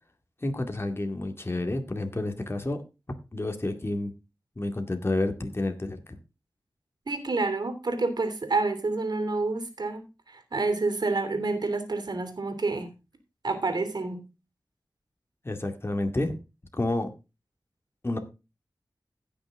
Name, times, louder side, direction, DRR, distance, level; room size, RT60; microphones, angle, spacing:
voice 1, 0.4-2.8 3.3-4.1 4.6-6.2 15.4-16.4 16.7-17.1 18.0-18.2, left 2 dB, 35° left, 6 dB, 2.2 m, -29 dB
voice 2, 7.1-12.9 13.4-14.2, right 3 dB, 70° right, 9 dB, 3.0 m, -28 dB
16.0 x 6.2 x 3.7 m, 0.28 s
cardioid pair, 50°, 7 cm